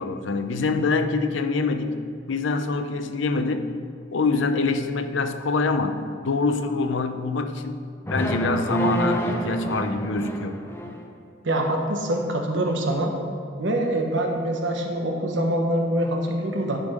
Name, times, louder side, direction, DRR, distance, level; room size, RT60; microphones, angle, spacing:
voice 1, 0.0-2.0 2.3-3.7 4.1-10.6, left 3 dB, 85° left, 8 dB, 0.6 m, -25 dB
sound 1, 8.1-11.1, left 1 dB, 15° left, 0.5 m, -28 dB
voice 2, 11.4-13.1 13.6-16.8, right 1 dB, 75° right, 2 dB, 1.2 m, -24 dB
10.0 x 5.2 x 5.1 m, 2.3 s
head